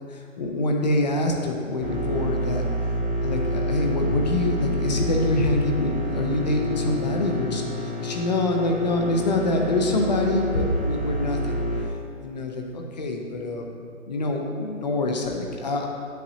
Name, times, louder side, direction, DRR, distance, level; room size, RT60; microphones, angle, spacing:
voice 1, 0.1-2.6 3.2-7.7 8.0-11.6 12.2-13.6 14.1-15.9, left 2 dB, 35° left, 2 dB, 0.7 m, -25 dB
sound 1, 1.8-11.8, equal, 5° right, 0.5 m, -28 dB
8.4 x 7.3 x 2.8 m, 2.4 s
figure-of-eight pair, 140°, 40 cm